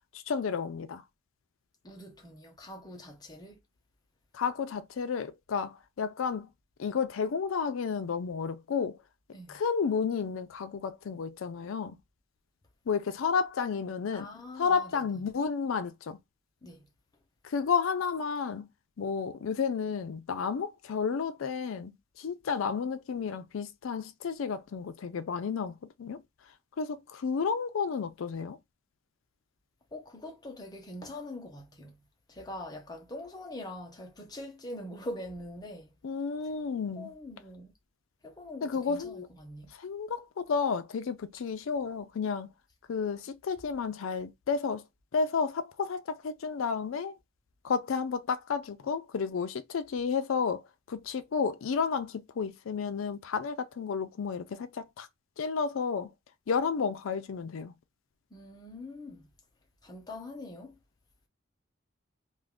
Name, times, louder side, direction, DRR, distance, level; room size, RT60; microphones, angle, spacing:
voice 1, 0.1-1.0 4.3-6.5 6.8-9.0 9.5-12.0 12.9-16.2 17.4-18.7 19.0-26.2 26.8-28.6 36.0-37.1 38.6-39.3 39.7-42.5 42.9-44.8 45.1-47.2 47.6-50.6 50.9-55.1 55.4-56.1 56.5-57.7, left 5 dB, 90° left, 0.4 m, -32 dB
voice 2, 1.8-3.6 9.3-9.6 14.1-15.1 16.6-16.9 29.9-32.0 32.3-35.9 37.0-37.7 38.2-39.7 58.3-59.3 59.8-60.8, left 1 dB, 20° left, 0.8 m, -43 dB
2.4 x 2.4 x 3.5 m
head